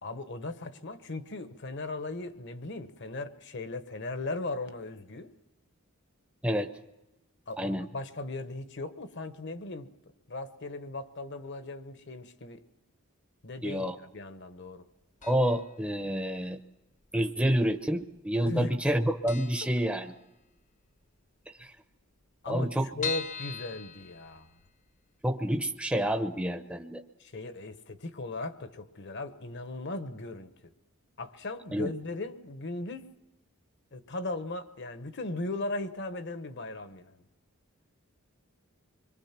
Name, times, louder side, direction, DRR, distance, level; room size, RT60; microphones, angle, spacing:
voice 1, 0.0-5.3 7.5-9.9 10.3-12.6 13.4-14.8 18.4-18.7 22.4-24.5 27.2-30.7 31.2-33.1 33.9-37.2, left 2 dB, 55° left, 1.2 m, -38 dB
voice 2, 7.6-7.9 13.6-13.9 15.2-16.6 17.1-20.1 21.6-21.7 22.5-22.9 25.2-27.0 31.7-31.9, equal, 5° right, 0.8 m, -28 dB
sound 1, 15.2-15.7 16.0-16.1 17.0-17.7 18.0-18.2 18.5-18.6 18.9-19.0 19.3-20.6 21.0-21.1 21.3-21.4 21.6-21.7 22.2-24.8 25.3-25.4 25.8-25.9, left 7 dB, 35° left, 0.9 m, -40 dB
26.0 x 23.0 x 5.9 m
head